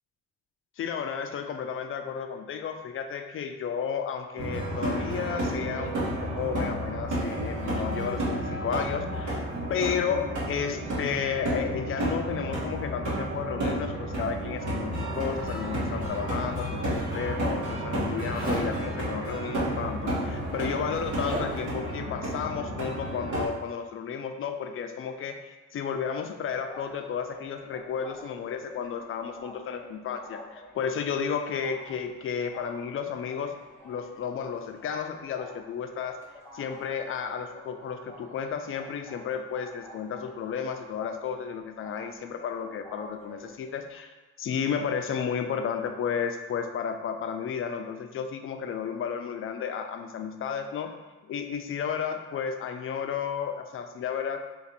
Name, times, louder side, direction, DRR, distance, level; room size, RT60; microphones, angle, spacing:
voice 1, 0.8-9.4 9.7-33.6 33.8-36.2 36.5-50.9 51.2-54.4, left 7 dB, 45° left, 6 dB, 0.4 m, -33 dB
sound 1, 4.4-23.5, right 1 dB, 75° right, 1.2 m, -31 dB
Zipper (clothing), 15.3-16.9 18.3-18.7 19.9-20.0 20.3-21.8, right 1 dB, 30° right, 0.9 m, -38 dB
sound 2, 26.7-44.0, left 1 dB, 10° left, 0.9 m, -49 dB
2.6 x 2.5 x 4.0 m, 1.2 s
cardioid pair, 90°, 30 cm